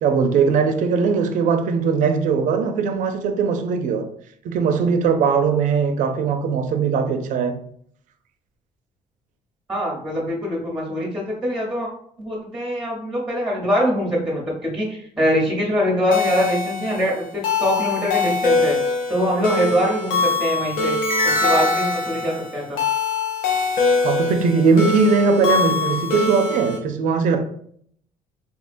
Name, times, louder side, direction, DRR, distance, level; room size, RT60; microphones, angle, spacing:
voice 1, 0.0-4.1 4.4-7.6 24.0-27.4, right 5 dB, 70° right, 0.5 m, -20 dB
voice 2, 9.7-11.9 12.2-18.8 19.1-21.0 21.2-22.8, equal, 5° right, 0.9 m, -23 dB
sound 1, 16.1-26.8, left 3 dB, 80° left, 0.6 m, -23 dB
3.7 x 2.1 x 2.5 m
cardioid pair, 95°, 14 cm